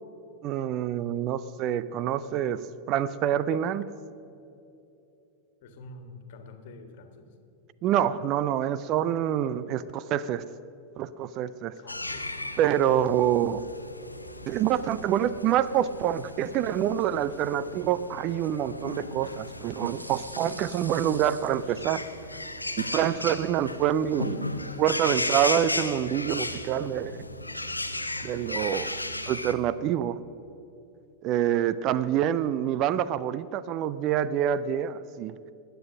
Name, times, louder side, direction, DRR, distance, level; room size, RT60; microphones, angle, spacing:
voice 1, 0.4-2.6 2.9-3.9 7.8-10.4 11.0-11.7 12.6-13.6 14.5-22.0 22.8-24.5 24.8-27.2 28.2-29.0 29.3-30.2 31.2-35.4, right 10 dB, 40° right, 16 dB, 0.4 m, -26 dB
voice 2, 5.6-7.3 11.8-12.3, left 2 dB, 50° left, 7 dB, 1.7 m, -47 dB
sound 1, 11.9-29.5, left 2 dB, 85° left, 0.8 m, -35 dB
sound 2, 13.2-22.5, equal, 90° right, 1.1 m, -50 dB
20.0 x 9.2 x 6.4 m, 2.7 s
figure-of-eight pair, 90°, 0 cm